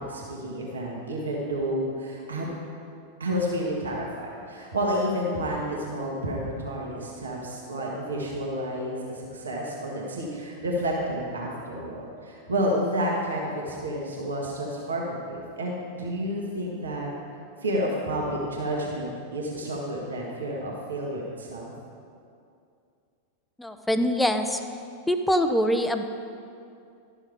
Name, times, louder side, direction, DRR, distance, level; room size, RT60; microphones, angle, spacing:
voice 1, 0.0-2.4 3.2-17.1 17.6-21.7, equal, 70° right, -3 dB, 1.5 m, -30 dB
voice 2, 23.6-24.6 25.1-26.0, equal, 5° left, 7 dB, 0.5 m, -24 dB
12.0 x 6.3 x 5.0 m, 2.4 s
figure-of-eight pair, 90°, 0 cm